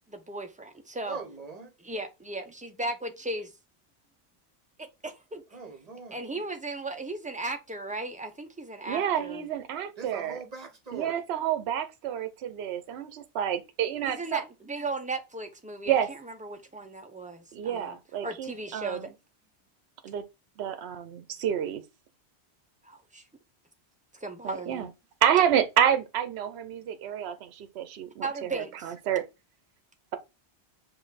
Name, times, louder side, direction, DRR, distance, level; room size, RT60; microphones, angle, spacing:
voice 1, 0.1-1.2 1.8-3.5 4.8-5.4 6.1-9.4 14.0-16.0 16.4-18.0 18.2-19.1 22.8-23.2 24.2-24.9 28.2-28.8, right 2 dB, 10° right, 0.4 m, -36 dB
voice 2, 1.1-1.7 5.5-6.2 10.0-11.2, right 5 dB, 35° right, 1.2 m, -41 dB
voice 3, 8.9-10.4 10.9-14.4 15.9-16.1 17.5-19.1 20.0-20.2 20.6-21.8 24.4-24.9 25.2-29.2, right 9 dB, 70° right, 0.9 m, -29 dB
5.3 x 2.5 x 3.9 m
omnidirectional pair, 1.1 m